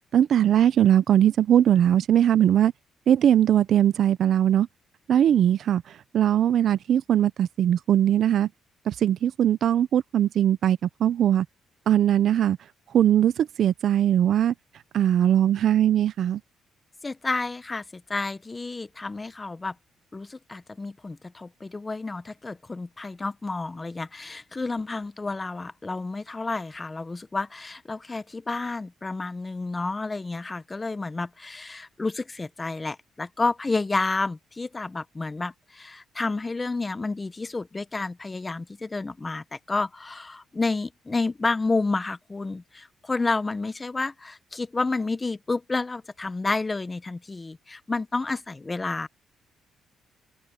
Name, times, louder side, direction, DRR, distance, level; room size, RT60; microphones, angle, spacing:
voice 1, 0.1-2.7 3.1-4.7 5.1-5.8 6.1-8.5 8.9-11.5 11.9-12.6 12.9-14.5 14.9-16.4, right 10 dB, 65° right, 0.7 m, -20 dB
voice 2, 17.0-19.7 20.1-49.1, left 3 dB, 25° left, 1.0 m, -30 dB
cardioid pair, 90°, 0 cm